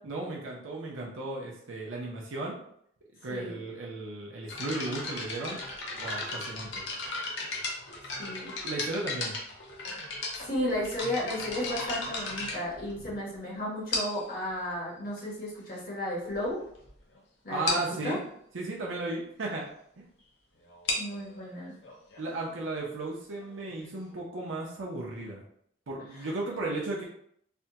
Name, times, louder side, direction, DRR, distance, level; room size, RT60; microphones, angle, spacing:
voice 1, 0.0-2.6 3.2-5.6 5.9-6.9 8.6-9.4 17.5-18.2 18.5-19.6 20.0-20.1 22.2-25.4 25.9-27.0, right 2 dB, 85° right, -3 dB, 0.7 m, -35 dB
voice 2, 3.3-3.6 8.2-8.5 10.4-16.6 17.4-18.2 21.0-21.7 26.1-26.3, left 1 dB, 45° left, -6 dB, 1.2 m, -34 dB
sound 1, 4.5-13.3 13.9-14.3 15.2-15.3 15.9-16.0 16.2-16.5 16.8-16.9 17.1-17.2 17.7-18.0 20.6-24.1, left 2 dB, 65° left, 0.7 m, -36 dB
3.4 x 2.2 x 2.7 m, 0.69 s
head